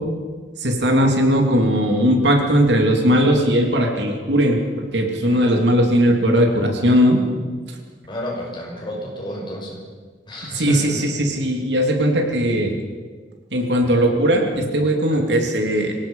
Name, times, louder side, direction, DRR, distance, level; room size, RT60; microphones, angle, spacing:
voice 1, 0.6-4.6 4.9-7.2 10.5-12.8 13.5-15.9, equal, 75° right, 3 dB, 3.0 m, -18 dB
voice 2, 8.1-9.8 10.3-11.0, equal, 25° left, -2 dB, 6.2 m, -30 dB
25.5 x 17.5 x 5.7 m, 1.5 s
head